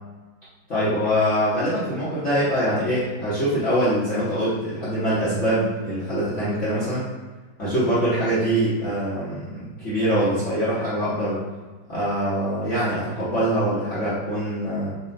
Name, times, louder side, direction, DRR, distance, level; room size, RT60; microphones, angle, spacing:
voice 1, 0.7-7.0 7.6-11.4 11.9-15.0, equal, 45° left, -11 dB, 1.2 m, -23 dB
4.2 x 2.4 x 3.9 m, 1.3 s
omnidirectional pair, 2.2 m